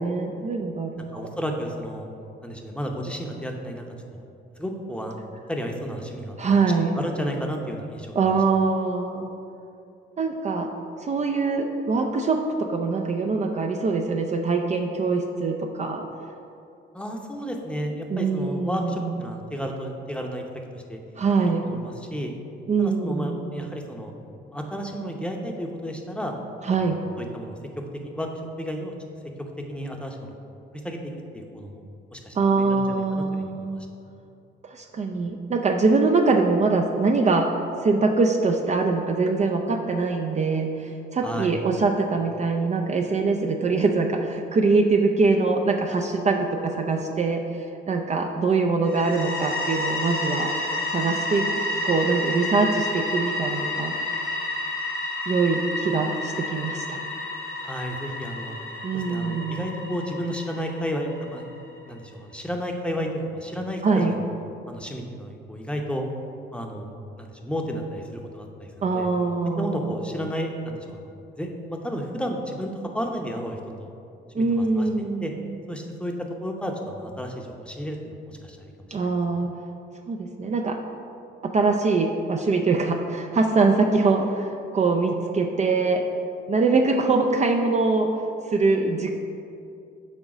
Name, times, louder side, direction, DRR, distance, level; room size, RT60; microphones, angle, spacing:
voice 1, 0.0-1.3 6.4-7.0 8.1-9.3 10.2-10.7 11.0-16.0 18.1-19.2 21.2-21.7 22.7-23.5 26.6-27.0 32.3-33.8 34.6-37.5 37.8-50.5 50.9-53.9 55.3-57.0 58.8-59.7 63.8-64.2 68.8-69.9 74.3-75.6 78.9-79.5 80.1-80.8 81.4-86.0 86.5-88.1 88.5-89.1, right 4 dB, 35° right, 3 dB, 0.5 m, -23 dB
voice 2, 1.1-2.1 2.4-3.8 4.1-4.2 4.6-5.2 5.5-6.4 6.9-8.1 16.9-20.4 20.7-21.0 21.6-22.3 22.8-24.1 24.5-26.3 26.7-26.8 27.2-27.5 28.1-28.3 28.6-28.9 29.7-30.3 30.7-31.0 31.3-31.8 32.1-33.8 41.2-41.6 57.6-58.5 58.9-61.5 61.8-63.8 64.1-64.2 64.7-66.1 66.5-69.1 69.6-73.9 74.4-74.9 75.2-75.3 75.7-76.1 76.4-78.7 79.4-79.5, equal, 5° left, 1 dB, 0.8 m, -32 dB
sound 1, 48.8-61.5, left 2 dB, 75° left, 1.4 m, -30 dB
6.3 x 3.9 x 6.0 m, 2.6 s
cardioid pair, 90°, 20 cm